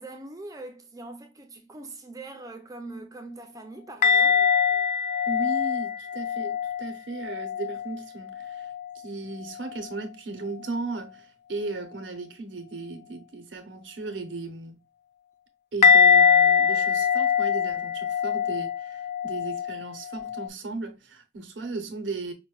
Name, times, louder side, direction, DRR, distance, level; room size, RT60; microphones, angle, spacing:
voice 1, 0.0-4.5, right 2 dB, 20° right, 0.5 m, -42 dB
sound 1, 4.0-8.0 8.3-8.9 15.8-20.5, left 6 dB, 40° left, 0.3 m, -23 dB
voice 2, 5.3-14.8 15.7-22.3, right 3 dB, 85° right, 0.8 m, -36 dB
5.3 x 2.2 x 2.2 m
head